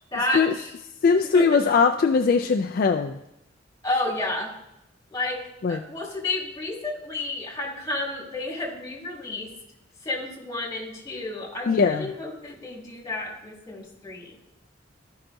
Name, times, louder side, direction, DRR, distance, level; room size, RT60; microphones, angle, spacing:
voice 1, 0.1-0.6 1.3-1.6 3.8-4.5 5.1-9.5 10.0-14.4, left 2 dB, 20° left, -3 dB, 2.3 m, -31 dB
voice 2, 1.0-3.2 5.6-5.8 11.7-12.1, left 5 dB, 50° left, 5 dB, 0.3 m, -20 dB
13.0 x 5.6 x 2.6 m, 0.86 s
head